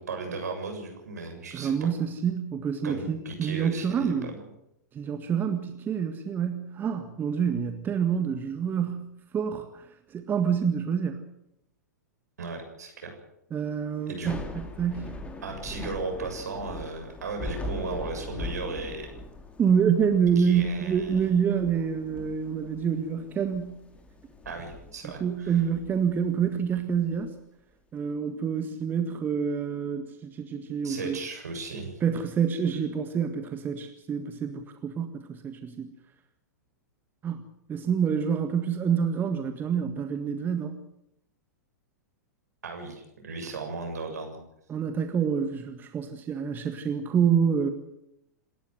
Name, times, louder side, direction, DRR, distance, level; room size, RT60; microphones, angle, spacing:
voice 1, 0.0-1.9 2.8-4.4 12.4-13.2 14.1-14.3 15.4-19.1 20.4-21.3 24.4-25.6 30.8-32.0 42.6-44.4, right 3 dB, 65° right, 4 dB, 7.4 m, -36 dB
voice 2, 1.5-4.3 4.9-9.1 9.3-11.2 13.5-14.3 14.8-15.1 19.6-23.8 25.0-27.4 27.9-31.2 32.0-35.9 37.2-37.4 37.7-40.8 44.7-47.7, right 7 dB, 20° right, 7 dB, 1.8 m, -27 dB
Thunder / Rain, 14.1-27.2, left 2 dB, 10° left, 2.8 m, -41 dB
27.5 x 13.5 x 8.1 m, 0.80 s
figure-of-eight pair, 100°, 9 cm